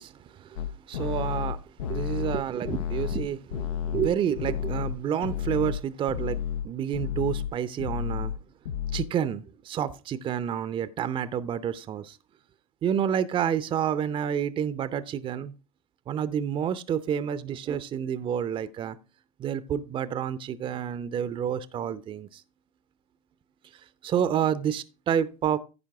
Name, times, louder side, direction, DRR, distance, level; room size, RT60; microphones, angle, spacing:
voice 1, 0.0-1.6 1.9-6.4 6.6-8.3 8.9-12.2 12.8-15.5 16.1-19.0 19.4-22.4 24.0-25.6, right 9 dB, 30° right, 0.7 m, -29 dB
sound 1, 0.6-5.8 6.1-6.7 6.9-7.5 7.8-8.4 8.7-9.1, left 10 dB, 70° left, 0.7 m, -31 dB
15.0 x 5.2 x 3.5 m
hypercardioid pair, 85°, 18 cm